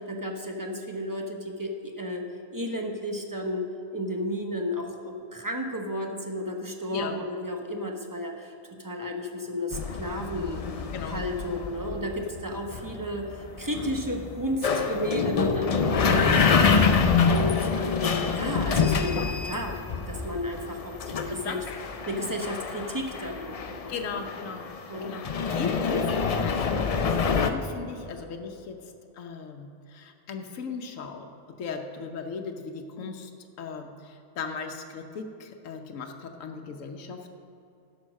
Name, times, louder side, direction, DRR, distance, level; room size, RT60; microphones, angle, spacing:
voice 1, 0.1-8.5 8.8-10.6 11.1-16.4 17.3-21.6 22.1-23.9 24.5-24.6 24.9-25.2, equal, 20° right, 2 dB, 0.8 m, -33 dB
sound 1, 9.7-27.5, left 5 dB, 60° left, 0.3 m, -26 dB
voice 2, 16.6-17.0 21.3-21.6 22.1-22.4 23.9-24.7 25.0-28.8 29.1-33.3 33.6-37.3, left 5 dB, 80° left, 4 dB, 1.2 m, -37 dB
11.0 x 6.4 x 6.3 m, 2.7 s
omnidirectional pair, 1.3 m